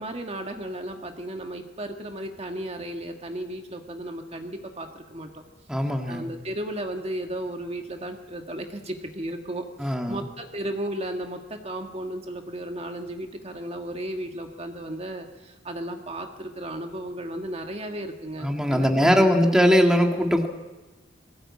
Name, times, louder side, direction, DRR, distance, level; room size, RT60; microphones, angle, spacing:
voice 1, 0.0-5.4 6.1-19.5, right 1 dB, 35° right, 4 dB, 1.7 m, -34 dB
voice 2, 5.7-6.3 9.8-10.2 18.4-20.5, equal, 5° right, 3 dB, 1.8 m, -20 dB
21.5 x 17.0 x 8.5 m, 1.2 s
head